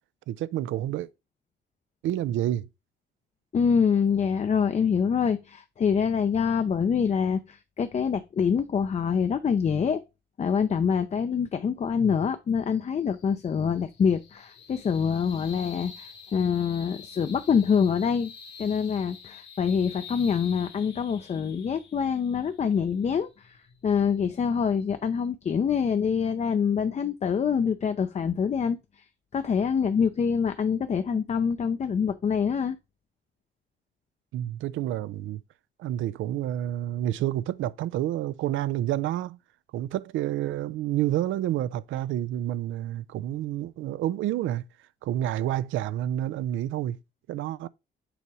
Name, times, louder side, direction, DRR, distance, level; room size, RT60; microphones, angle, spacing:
voice 1, 0.3-1.1 2.0-2.7 12.0-12.1 31.1-31.2 34.3-35.4 35.8-39.4 39.7-44.6 45.0-47.0 47.3-47.7, right 13 dB, 75° right, 0.4 m, -29 dB
voice 2, 3.5-10.0 10.4-18.3 18.6-23.6 23.8-28.8 29.3-32.8, left 6 dB, 35° left, 0.5 m, -25 dB
sound 1, 12.6-25.3, left 6 dB, 60° left, 1.4 m, -48 dB
7.0 x 2.9 x 4.7 m
cardioid pair, 90°, 20 cm